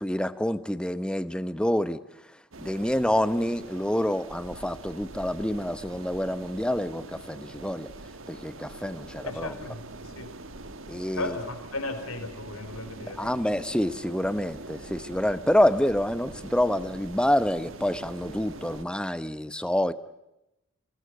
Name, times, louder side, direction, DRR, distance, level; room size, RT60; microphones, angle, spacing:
voice 1, 0.0-2.0 2.6-7.9 8.3-9.5 10.9-11.4 13.2-19.9, left 1 dB, 5° left, 13 dB, 0.9 m, -27 dB
sound 1, 2.5-18.8, right 2 dB, 60° right, 1.6 m, -44 dB
voice 2, 9.2-10.4 11.1-13.3, left 2 dB, 75° left, 7 dB, 4.6 m, -36 dB
27.5 x 19.0 x 7.9 m, 0.90 s
head